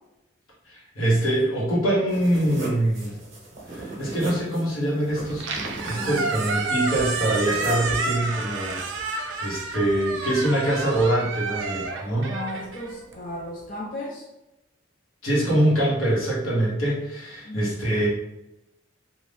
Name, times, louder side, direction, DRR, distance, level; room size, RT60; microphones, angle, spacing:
voice 1, 0.7-3.1 3.7-5.4 5.8-12.3 15.2-18.1, right 1 dB, 85° left, -5 dB, 1.2 m, -24 dB
sound 1, 2.1-7.9, right 2 dB, 35° right, 0.8 m, -37 dB
Squeak, 5.3-13.5, right 3 dB, 65° right, 0.4 m, -30 dB
voice 2, 12.1-14.3 17.4-17.7, left 1 dB, 40° left, -4 dB, 0.5 m, -35 dB
2.6 x 2.3 x 3.3 m, 0.91 s
head